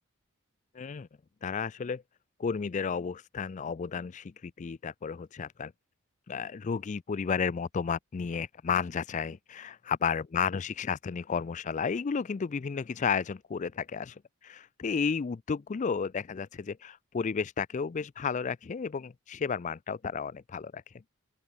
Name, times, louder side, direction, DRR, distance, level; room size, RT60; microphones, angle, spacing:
voice 1, 0.7-1.1 1.4-2.0 2.4-5.7 6.3-20.8, left 6 dB, 35° left, 0.3 m, -32 dB
open air
head